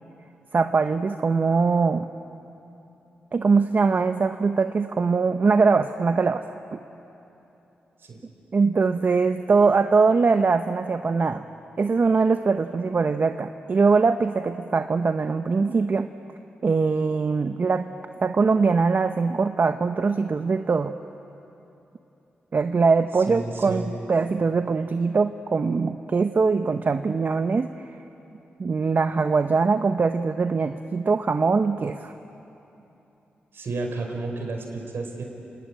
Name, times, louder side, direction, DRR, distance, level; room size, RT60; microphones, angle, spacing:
voice 1, 0.5-2.1 3.3-6.8 8.5-11.5 11.8-16.1 16.6-17.9 18.2-20.9 22.5-23.8 24.1-27.7 28.6-32.1, right 4 dB, 50° right, 8 dB, 0.9 m, -22 dB
voice 2, 23.3-23.9 33.5-35.2, right 3 dB, 70° right, 3 dB, 4.9 m, -31 dB
28.5 x 20.5 x 8.8 m, 3.0 s
supercardioid pair, 50°, 4 cm